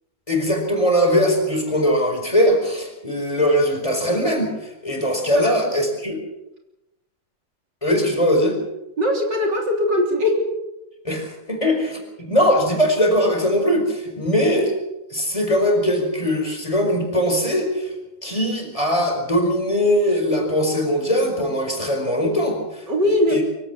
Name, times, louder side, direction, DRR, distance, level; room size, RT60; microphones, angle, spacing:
voice 1, 0.3-6.2 7.8-8.6 11.0-14.7 15.1-17.9 18.2-22.8 23.3-23.4, equal, 15° left, 1 dB, 4.9 m, -20 dB
voice 2, 5.3-5.7 9.0-10.5 22.9-23.4, left 1 dB, 60° right, 1 dB, 4.1 m, -20 dB
24.0 x 16.5 x 7.3 m, 0.93 s
omnidirectional pair, 2.1 m